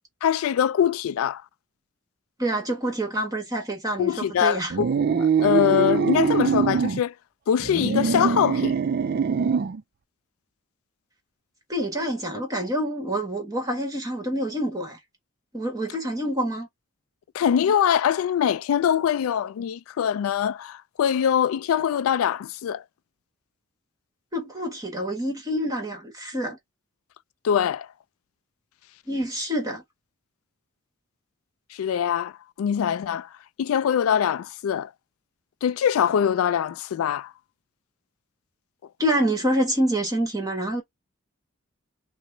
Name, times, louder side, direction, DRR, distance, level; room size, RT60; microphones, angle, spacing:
voice 1, 0.2-1.4 4.0-7.1 7.5-8.7 17.3-22.8 27.4-27.9 31.7-32.3 32.6-33.3 33.6-34.9 35.6-37.3, left 8 dB, 75° left, 0.3 m, -23 dB
voice 2, 2.4-4.7 11.7-15.0 15.5-16.7 24.3-26.6 29.1-29.8 39.0-40.8, right 1 dB, 15° right, 1.3 m, -27 dB
sound 1, 4.7-7.0 7.6-9.8, right 5 dB, 45° right, 0.3 m, -23 dB
5.9 x 2.0 x 2.7 m
head